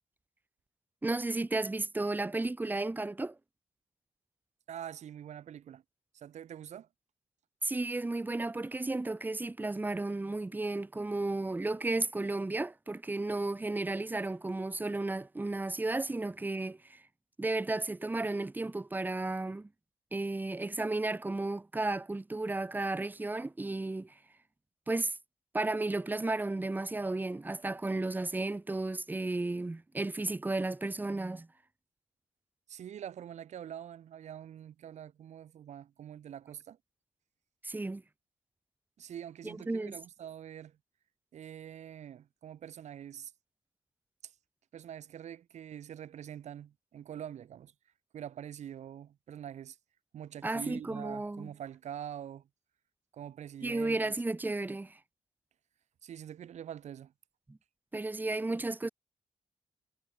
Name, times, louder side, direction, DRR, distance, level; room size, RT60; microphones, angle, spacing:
voice 1, 1.0-3.3 7.6-17.0 17.4-19.7 20.1-24.1 24.9-25.1 25.5-31.5 37.6-38.0 39.4-39.9 50.4-51.5 53.6-55.0 57.5-57.6 57.9-58.9, right 2 dB, 15° right, 3.0 m, -33 dB
voice 2, 4.7-5.8 6.1-6.9 32.7-36.8 39.0-40.8 41.3-43.3 44.2-44.3 44.7-47.7 48.1-49.8 50.1-52.5 53.1-54.1 56.0-57.1, right 10 dB, 70° right, 3.7 m, -45 dB
cardioid pair, 130°, 12 cm